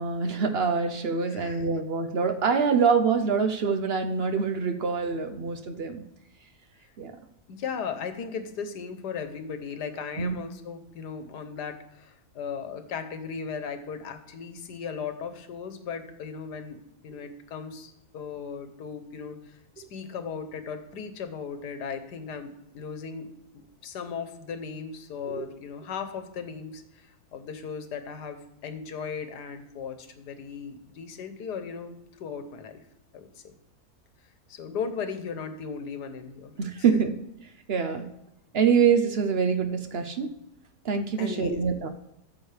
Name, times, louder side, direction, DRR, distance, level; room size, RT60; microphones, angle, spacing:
voice 1, 0.0-6.0 7.0-7.1 10.2-10.4 25.3-25.4 36.6-37.1 37.7-38.1 38.5-40.3 40.8-41.9, right 6 dB, 55° right, 7 dB, 0.7 m, -25 dB
voice 2, 1.3-1.7 7.5-23.3 23.5-32.8 33.1-33.5 34.5-36.5 36.9-37.1 41.2-41.6, left 6 dB, 85° left, 9 dB, 1.5 m, -37 dB
13.5 x 7.1 x 3.3 m, 0.87 s
omnidirectional pair, 1.7 m